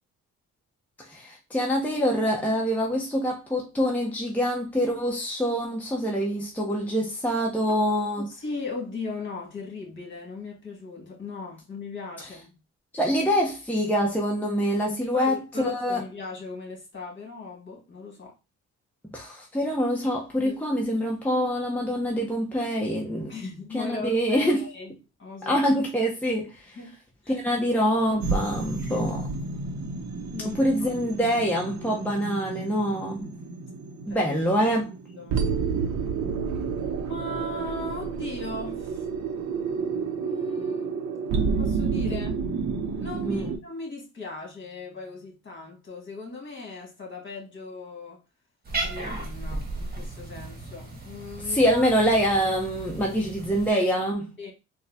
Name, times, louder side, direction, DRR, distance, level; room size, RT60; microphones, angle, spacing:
voice 1, 1.0-8.3 12.9-16.0 19.0-23.3 23.7-24.6 25.5-26.8 27.3-29.3 30.4-33.3 34.1-34.9 43.2-43.5 51.4-54.3, equal, 5° left, 0.8 m, -25 dB
voice 2, 8.2-12.5 15.0-18.3 20.4-20.6 23.3-24.9 25.2-25.6 26.7-27.0 27.2-27.4 28.8-29.0 30.3-30.9 34.1-34.2 35.1-35.4 37.0-39.1 40.2-41.0 41.6-42.3 43.0-48.2 48.8-51.8 54.4-54.5, left 3 dB, 40° left, 1.7 m, -38 dB
sound 1, 28.2-43.6, right 5 dB, 70° right, 0.7 m, -30 dB
Cat, 48.6-53.7, right 2 dB, 30° right, 1.2 m, -35 dB
4.1 x 2.2 x 2.7 m
cardioid pair, 90°, 30 cm